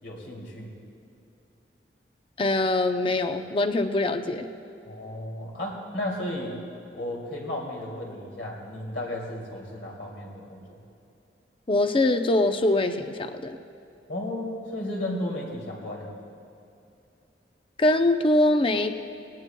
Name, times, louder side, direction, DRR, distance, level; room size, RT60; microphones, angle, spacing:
voice 1, 0.0-0.7 4.9-6.6 6.9-10.8 14.1-16.1, left 1 dB, 75° left, -1 dB, 2.8 m, -34 dB
voice 2, 2.4-4.5 11.7-13.6 17.8-18.9, left 2 dB, 30° left, 7 dB, 0.6 m, -23 dB
19.5 x 18.0 x 2.3 m, 2.7 s
head